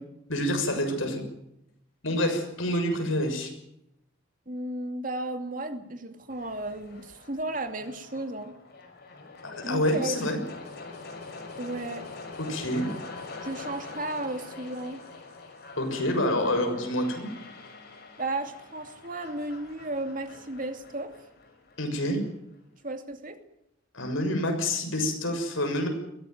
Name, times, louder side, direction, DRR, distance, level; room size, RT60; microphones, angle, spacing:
voice 1, 0.3-1.2 2.0-3.5 9.4-10.4 12.4-12.9 15.8-17.3 21.8-22.2 23.9-25.9, left 1 dB, 75° left, 4 dB, 6.6 m, -27 dB
voice 2, 4.5-8.5 9.6-10.2 11.6-12.1 13.4-15.0 18.2-21.1 22.8-23.4, right 2 dB, 40° right, 7 dB, 2.6 m, -34 dB
sound 1, 6.3-22.3, left 3 dB, 50° left, 5.7 m, -44 dB
22.0 x 16.0 x 9.4 m, 0.82 s
head